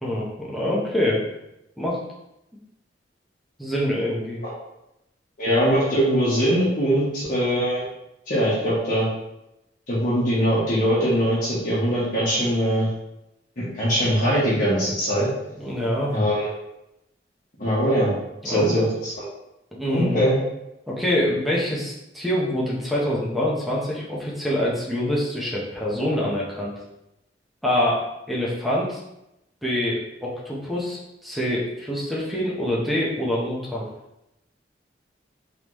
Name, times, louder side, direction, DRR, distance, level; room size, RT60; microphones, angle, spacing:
voice 1, 0.0-1.2 1.8-2.0 3.6-4.4 15.6-16.1 18.4-18.8 19.7-20.2 20.9-26.7 27.6-28.0 28.3-29.0 29.6-33.8, left 1 dB, ahead, -5 dB, 0.9 m, -25 dB
voice 2, 5.4-7.8 8.3-9.1 9.9-12.9 13.6-15.3 16.1-16.5 17.6-18.1 18.4-19.2 19.9-20.4, equal, 50° left, -10 dB, 1.2 m, -22 dB
3.9 x 3.4 x 3.1 m, 0.88 s
head